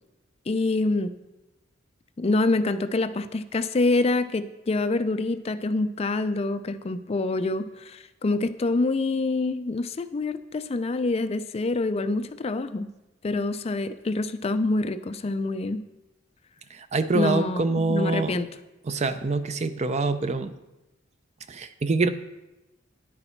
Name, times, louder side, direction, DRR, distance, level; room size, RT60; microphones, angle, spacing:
voice 1, 0.5-1.1 2.2-12.9 13.2-15.8 17.1-18.5, left 2 dB, 30° left, 11 dB, 0.4 m, -26 dB
voice 2, 16.7-18.4 18.8-20.5 21.5-22.1, right 3 dB, 35° right, 11 dB, 0.5 m, -25 dB
9.9 x 8.1 x 4.4 m, 0.99 s
head